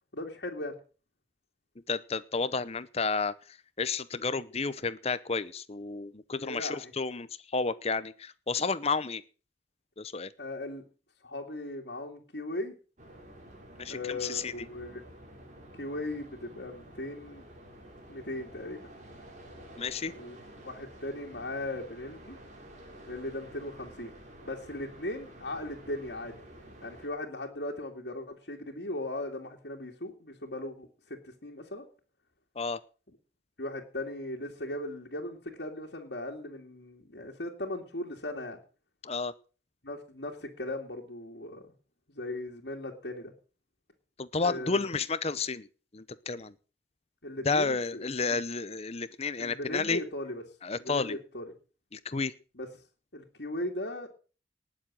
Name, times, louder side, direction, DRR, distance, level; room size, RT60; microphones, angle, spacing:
voice 1, 0.1-0.7 6.4-6.9 10.4-10.8 11.2-12.7 13.9-15.0 15.7-17.4 18.1-18.9 20.1-20.3 20.6-22.4 23.1-24.1 24.4-26.3 26.8-31.9 33.6-38.6 39.8-41.7 42.1-43.3 44.4-44.8 47.2-48.0 48.3-48.4 49.4-50.4 50.8-51.5 52.5-52.7 53.1-54.1, left 1 dB, 65° left, -2 dB, 2.5 m, -38 dB
voice 2, 1.9-9.2 10.0-10.3 13.8-14.7 19.8-20.1 32.6-32.8 39.0-39.3 44.2-45.7 45.9-46.5 47.4-50.0 50.6-51.2 51.9-52.3, left 4 dB, 35° left, 15 dB, 0.8 m, -31 dB
sound 1, 13.0-27.1, right 1 dB, 40° right, 4.6 m, -50 dB
19.5 x 7.4 x 7.5 m, 0.38 s
head